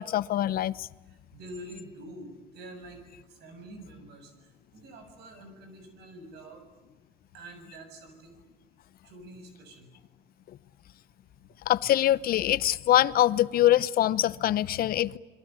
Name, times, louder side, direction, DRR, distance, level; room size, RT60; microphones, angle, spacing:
voice 1, 0.0-0.9 11.7-15.2, left 13 dB, 60° left, 18 dB, 0.8 m, -24 dB
voice 2, 1.1-3.0 3.3-4.3 4.7-6.6 7.3-8.4 9.0-9.9, right 1 dB, 80° right, 8 dB, 7.1 m, -46 dB
29.0 x 22.0 x 8.8 m, 1.2 s
cardioid pair, 110°, 17 cm